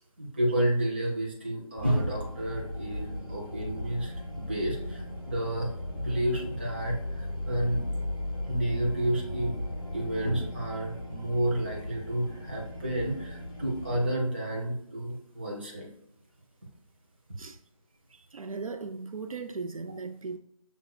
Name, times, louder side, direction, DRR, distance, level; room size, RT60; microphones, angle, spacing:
voice 1, 0.0-7.8 8.5-9.5 9.9-15.9, right 1 dB, 20° right, 0.7 m, -30 dB
sound 1, 1.8-14.1, left 1 dB, 40° left, 1.6 m, -37 dB
voice 2, 18.1-20.4, right 4 dB, 70° right, 0.4 m, -38 dB
6.2 x 3.5 x 2.3 m
figure-of-eight pair, 170°, 18 cm